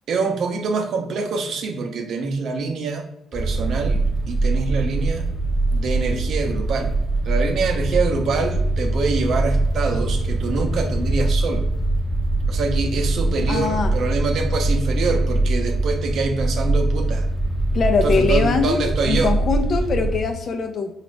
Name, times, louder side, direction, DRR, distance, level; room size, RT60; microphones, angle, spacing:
voice 1, 0.1-3.0 3.3-5.2 5.7-7.0 7.2-11.7 12.5-17.3 18.0-19.4, right 4 dB, 65° right, 5 dB, 0.6 m, -25 dB
sound 1, 3.3-20.2, right 2 dB, 10° left, 0.7 m, -22 dB
voice 2, 13.5-13.9 17.7-18.8 19.0-20.9, left 5 dB, 55° left, 6 dB, 0.6 m, -22 dB
4.9 x 2.4 x 3.2 m, 0.83 s
cardioid pair, 90°, 0 cm